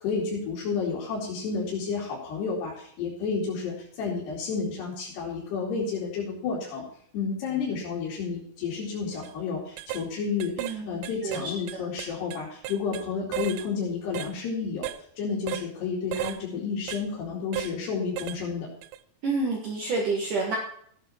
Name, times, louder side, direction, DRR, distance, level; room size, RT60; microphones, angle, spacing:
voice 1, 0.0-6.9 7.1-18.7, left 5 dB, 75° left, -5 dB, 4.7 m, -31 dB
sound 1, 9.1-9.3 9.8-10.1 10.4-10.8 11.0-13.1 13.3-13.7 14.1-14.3 14.8-15.0 15.5-15.7 16.1-16.4 16.9-17.0 17.5-17.7 18.2-18.4 18.8-19.0, right 13 dB, 90° right, 2.9 m, -34 dB
voice 2, 10.6-11.4 11.7-11.8 19.2-20.6, right 3 dB, 55° right, -1 dB, 2.9 m, -29 dB
14.5 x 10.0 x 4.4 m, 0.63 s
omnidirectional pair, 4.9 m